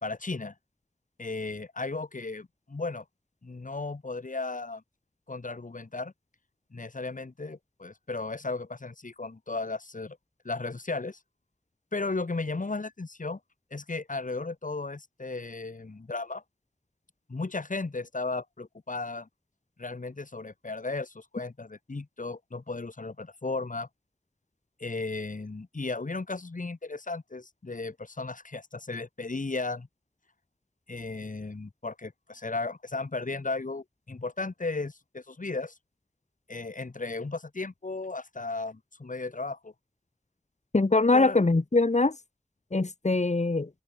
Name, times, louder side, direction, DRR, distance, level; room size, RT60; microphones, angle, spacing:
voice 1, 0.0-0.5 1.2-3.0 3.4-4.8 5.3-6.1 6.7-10.2 10.4-11.2 11.9-13.4 13.7-16.4 17.3-19.3 19.8-23.9 24.8-29.9 30.9-35.7 36.5-39.7 41.1-41.4, left 3 dB, 75° left, 3.6 m, -35 dB
voice 2, 40.7-42.1 42.7-43.7, left 3 dB, 60° left, 2.7 m, -23 dB
wide cardioid pair, 50°, 14 cm